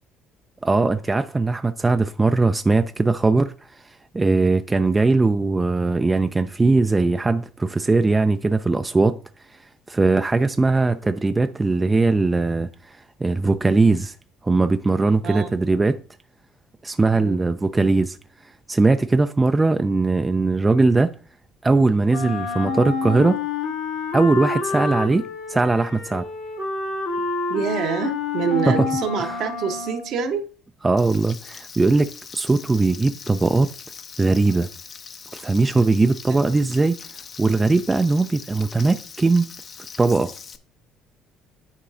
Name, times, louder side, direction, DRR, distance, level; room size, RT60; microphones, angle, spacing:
voice 1, 0.6-3.5 4.1-9.2 9.9-14.1 14.4-16.0 16.8-18.2 18.7-21.1 21.6-23.4 24.1-26.3 28.7-28.8 29.2-29.4 30.8-33.7 34.2-34.7 35.3-37.0 37.4-39.5 40.0-40.3, right 3 dB, 20° right, 0.4 m, -20 dB
voice 2, 15.2-15.6 17.1-17.5 27.5-30.5 32.8-33.1 36.3-36.5, right 6 dB, 60° right, 1.0 m, -27 dB
Wind instrument woodwind instrument, 22.1-30.2, left 4 dB, 85° left, 1.7 m, -28 dB
Frying (food), 31.0-40.6, left 6 dB, 45° left, 0.7 m, -41 dB
9.9 x 4.6 x 2.6 m
hypercardioid pair, 55°, 0 cm